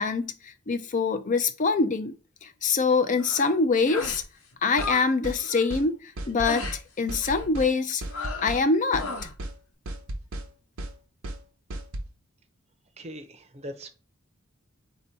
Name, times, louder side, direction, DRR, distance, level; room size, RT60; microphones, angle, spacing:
voice 1, 0.0-2.2 2.4-4.2 4.6-6.0 6.3-8.0 8.4-9.1, left 4 dB, 40° left, 0.5 m, -24 dB
sound 1, 3.2-3.5 3.9-4.3 4.5-5.1 5.4-5.7 6.4-6.8 7.2-7.5 8.1-8.6 8.9-9.4, left 3 dB, 80° left, 1.0 m, -35 dB
sound 2, 4.8-4.9 5.2-5.4 5.7-5.9 6.2-6.8 7.1-7.2 7.5-7.7 8.0-8.6 8.9-9.1 9.4-9.6 9.9-10.5 10.8-10.9 11.2-11.4 11.7-12.1, right 1 dB, 85° right, 0.8 m, -34 dB
voice 2, 13.0-13.9, equal, 30° right, 0.6 m, -40 dB
4.2 x 2.8 x 4.4 m
head